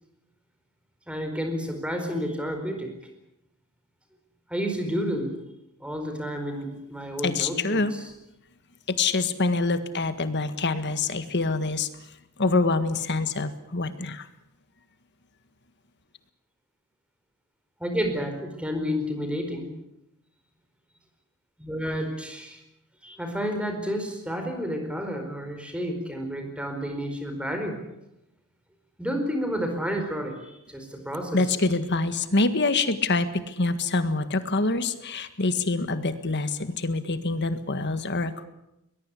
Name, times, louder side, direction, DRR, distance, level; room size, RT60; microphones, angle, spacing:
voice 1, 1.1-2.9 4.5-5.3 5.8-8.0 17.8-19.7 21.6-22.6 23.0-27.8 29.0-31.4, equal, 5° right, 5 dB, 4.6 m, -30 dB
voice 2, 7.2-7.9 8.9-11.9 12.4-14.3 31.3-38.4, left 3 dB, 50° left, 11 dB, 1.7 m, -25 dB
22.5 x 21.0 x 8.4 m, 0.87 s
head